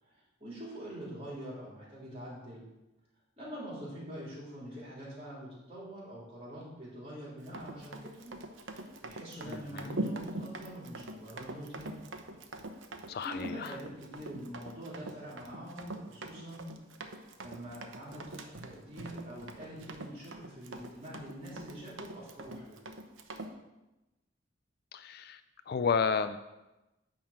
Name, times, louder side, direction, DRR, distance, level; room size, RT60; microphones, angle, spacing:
voice 1, 0.0-2.7 3.4-11.9 13.2-16.7 17.4-22.8, equal, 30° right, -5 dB, 3.4 m, -45 dB
Run, 7.4-23.5, right 2 dB, 75° right, 0.8 m, -43 dB
voice 2, 9.5-10.0 13.1-13.7 24.9-25.4 25.7-26.4, left 5 dB, 50° left, 11 dB, 0.3 m, -32 dB
10.5 x 3.7 x 7.3 m, 1.0 s
head